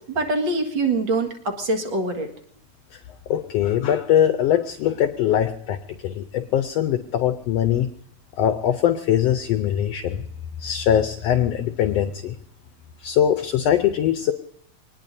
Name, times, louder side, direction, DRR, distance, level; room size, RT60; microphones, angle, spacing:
voice 1, 0.1-2.3, right 2 dB, 45° right, 3 dB, 2.2 m, -24 dB
voice 2, 3.3-5.8 6.0-7.9 8.4-10.2 10.6-12.3 13.0-14.3, left 10 dB, 75° left, 8 dB, 1.6 m, -21 dB
24.5 x 19.5 x 2.7 m, 0.65 s
omnidirectional pair, 3.4 m